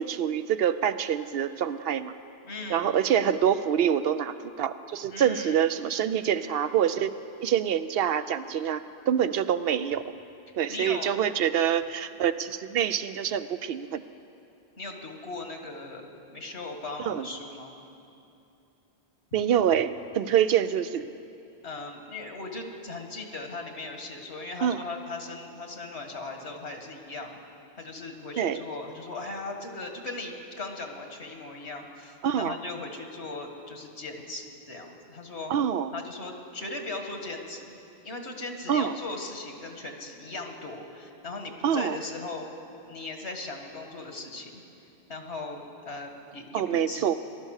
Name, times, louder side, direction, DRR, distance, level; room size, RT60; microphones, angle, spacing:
voice 1, 0.0-2.1 2.7-7.1 7.4-10.0 10.6-14.0 17.1-17.3 19.3-21.1 24.6-24.8 28.4-28.6 32.2-32.6 35.5-35.9 38.7-39.0 41.6-42.0 46.5-47.1, right 9 dB, 70° right, 13 dB, 0.7 m, -26 dB
voice 2, 2.4-2.9 5.1-5.6 10.7-11.1 14.8-17.7 21.6-27.4 27.8-35.5 35.9-37.8 38.0-42.4 42.8-44.6 45.1-47.1, left 2 dB, 85° left, 4 dB, 1.9 m, -38 dB
19.0 x 12.0 x 6.5 m, 2.7 s
omnidirectional pair, 1.1 m